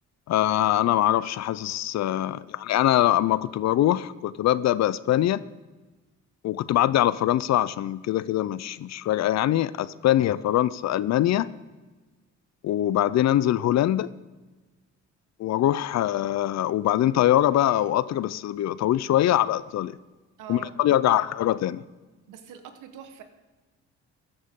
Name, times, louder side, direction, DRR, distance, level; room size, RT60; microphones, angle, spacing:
voice 1, 0.3-5.4 6.4-11.5 12.6-14.1 15.4-19.9 20.5-21.8, left 12 dB, 60° left, 18 dB, 0.5 m, -23 dB
voice 2, 20.4-20.8 22.3-23.2, right 9 dB, 85° right, 7 dB, 1.3 m, -43 dB
14.0 x 11.0 x 3.7 m, 1.2 s
cardioid pair, 90°, 30 cm